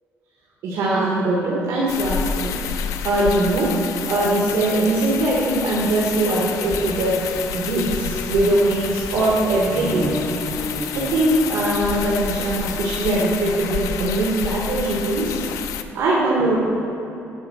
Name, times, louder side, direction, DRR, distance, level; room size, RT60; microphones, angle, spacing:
voice 1, 0.6-2.5 3.0-3.7 4.1-7.2 7.5-10.1 10.9-15.4 15.9-16.6, right 2 dB, 70° right, -6 dB, 1.4 m, -21 dB
sound 1, 1.9-15.8, left 8 dB, 85° left, 0.4 m, -29 dB
sound 2, 6.6-11.8, equal, 5° right, 0.6 m, -33 dB
9.9 x 4.4 x 6.3 m, 2.9 s
cardioid pair, 175°, 5 cm